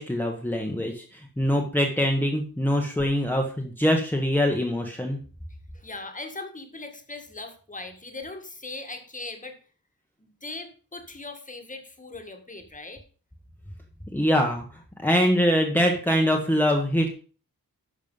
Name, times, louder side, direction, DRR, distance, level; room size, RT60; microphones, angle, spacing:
voice 1, 0.0-5.2 14.1-14.6 15.0-17.1, equal, 5° left, 2 dB, 1.2 m, -23 dB
voice 2, 5.7-9.6 10.2-13.0, left 3 dB, 20° left, 6 dB, 1.6 m, -39 dB
10.5 x 6.4 x 5.4 m, 0.38 s
wide cardioid pair, 175°, 35 cm